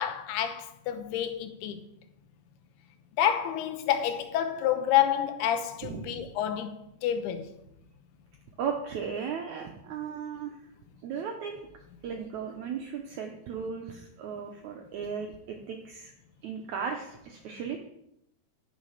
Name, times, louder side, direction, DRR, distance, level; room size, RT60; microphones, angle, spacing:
voice 1, 0.0-1.8 3.2-6.8 7.0-7.5, left 10 dB, 85° left, 2.9 m, -28 dB
voice 2, 5.8-6.2 8.6-10.5 11.0-11.6 12.0-16.1 16.4-17.8, right 6 dB, 90° right, 1.6 m, -36 dB
10.5 x 6.9 x 5.7 m
omnidirectional pair, 4.5 m